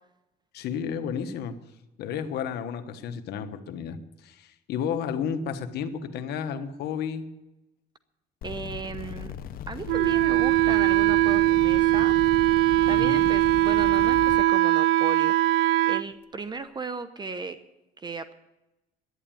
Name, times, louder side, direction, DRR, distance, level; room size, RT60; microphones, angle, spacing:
voice 1, 0.5-1.6 2.0-7.3 12.9-13.3, left 7 dB, 75° left, 8 dB, 1.3 m, -32 dB
sound 1, 8.4-14.4, left 8 dB, 60° left, 0.8 m, -38 dB
voice 2, 8.4-9.3 9.7-12.1 12.9-15.6 15.9-17.6 18.0-18.3, right 4 dB, 25° right, 11 dB, 0.8 m, -36 dB
Wind instrument woodwind instrument, 9.9-16.0, right 17 dB, 85° right, 0.4 m, -21 dB
11.0 x 10.0 x 9.0 m, 0.96 s
cardioid pair, 110°, 17 cm